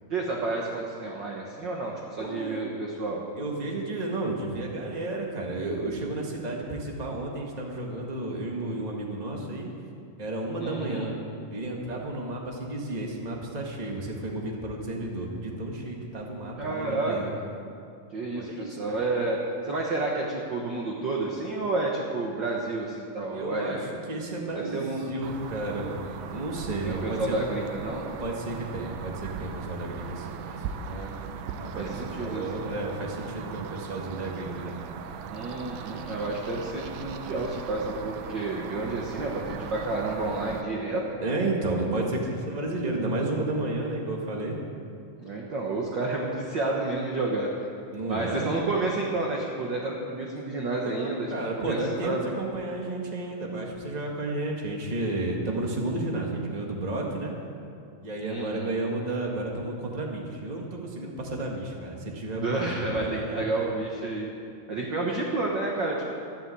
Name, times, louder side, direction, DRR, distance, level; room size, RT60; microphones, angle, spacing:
voice 1, 0.1-3.2 10.6-11.1 16.6-17.4 18.1-19.4 19.6-23.8 24.5-25.1 26.7-28.1 30.8-31.1 31.7-32.6 35.3-41.0 45.2-47.7 48.1-51.3 51.6-52.3 58.2-58.7 62.3-64.3 64.7-66.0, right 2 dB, 60° right, -1 dB, 1.2 m, -30 dB
voice 2, 2.2-2.6 3.3-9.7 10.2-11.1 11.5-17.3 18.3-19.0 23.3-26.0 26.3-27.4 28.2-30.7 31.6-34.7 41.2-44.6 47.9-48.5 50.8-57.3 58.0-63.7, right 2 dB, 30° right, 0 dB, 0.7 m, -32 dB
sound 1, 25.2-40.6, right 6 dB, 85° right, 2.5 m, -39 dB
12.5 x 11.5 x 7.7 m, 2.5 s
omnidirectional pair, 3.9 m